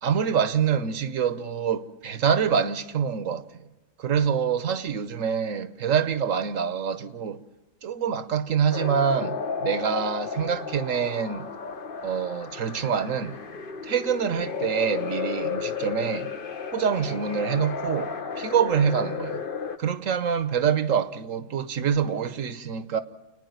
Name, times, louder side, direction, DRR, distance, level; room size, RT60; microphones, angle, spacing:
voice 1, 0.0-3.7 4.0-7.4 7.8-11.5 12.0-13.3 13.8-16.3 16.7-19.4 19.8-23.0, right 7 dB, 70° right, 1.3 m, -26 dB
sound 1, 8.7-19.8, left 5 dB, 45° left, 1.0 m, -33 dB
29.0 x 9.9 x 9.3 m
omnidirectional pair, 1.5 m